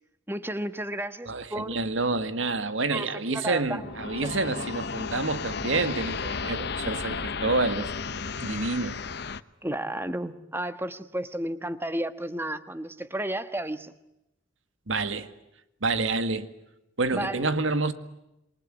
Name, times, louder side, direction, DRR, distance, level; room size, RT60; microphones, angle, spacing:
voice 1, 0.3-1.8 2.9-3.9 9.6-13.9 17.1-17.5, right 1 dB, 10° right, 1.3 m, -32 dB
voice 2, 1.3-7.9 8.4-9.0 14.9-15.3 15.8-16.5 17.0-17.9, right 3 dB, 80° right, 2.0 m, -28 dB
sound 1, 3.7-9.4, left 5 dB, 55° left, 0.9 m, -33 dB
28.0 x 23.0 x 9.3 m
head